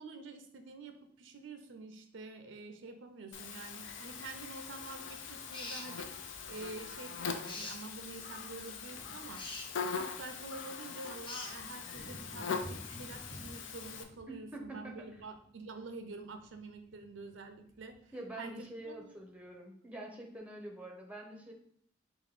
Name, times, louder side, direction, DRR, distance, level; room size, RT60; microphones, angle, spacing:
voice 1, 0.0-9.5 9.9-19.1, right 3 dB, 75° right, 7 dB, 0.6 m, -48 dB
Buzz, 3.3-14.0, left 5 dB, 75° left, 0.5 m, -42 dB
sound 1, 3.9-5.3 6.6-6.7 6.9-7.1 7.4-19.5, equal, 45° left, 1.3 m, -56 dB
sound 2, 5.5-5.9 7.4-7.8 9.3-9.7 11.2-11.5, left 2 dB, 25° left, 0.7 m, -43 dB
voice 2, 14.3-15.0 18.1-21.5, right 1 dB, 5° right, 1 dB, 0.7 m, -46 dB
3.8 x 2.6 x 4.6 m, 0.63 s
head